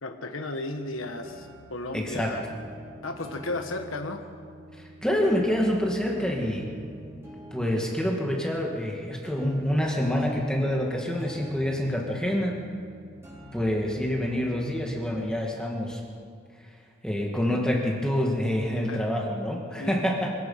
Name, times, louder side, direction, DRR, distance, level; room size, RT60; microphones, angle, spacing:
voice 1, 0.0-2.4 3.0-4.2 18.9-19.1 19.8-20.1, left 2 dB, 90° left, 5 dB, 1.3 m, -34 dB
sound 1, 0.7-15.1, right 1 dB, 15° right, 5.7 m, -46 dB
voice 2, 1.9-2.4 4.8-6.7 7.5-12.6 13.5-16.0 17.0-20.3, equal, 5° left, -1 dB, 2.2 m, -27 dB
25.5 x 18.0 x 5.8 m, 2.2 s
head